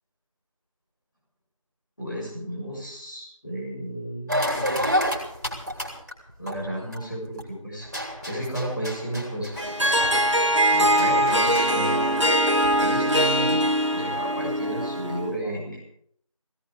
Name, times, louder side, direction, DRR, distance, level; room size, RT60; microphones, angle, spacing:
voice 1, 2.0-4.9 6.4-7.9 8.3-9.5 10.6-12.4 12.8-15.8, right 1 dB, 35° left, -3 dB, 6.8 m, -33 dB
sound 1, 4.3-7.4 7.8-12.9, equal, 30° right, 2.9 m, -31 dB
Harp, 9.6-15.3, equal, 55° right, 1.4 m, -22 dB
16.5 x 16.5 x 4.9 m, 0.69 s
figure-of-eight pair, 180°, 18 cm